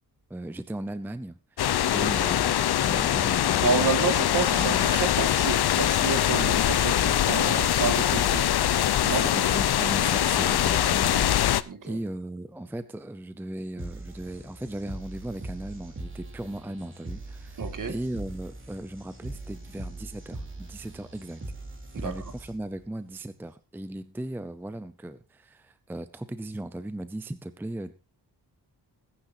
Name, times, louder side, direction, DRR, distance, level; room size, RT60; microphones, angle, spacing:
voice 1, 0.3-4.0 4.6-4.9 9.1-21.4 22.0-27.9, right 1 dB, 5° right, 0.6 m, -37 dB
sound 1, 1.6-11.6, left 11 dB, 75° left, 0.7 m, -23 dB
voice 2, 3.6-9.3 11.7-12.0 17.6-18.0 21.9-22.1, right 5 dB, 50° right, 2.1 m, -30 dB
sound 2, 13.8-22.8, right 2 dB, 30° right, 3.2 m, -41 dB
21.0 x 10.0 x 2.7 m
wide cardioid pair, 180°, 39 cm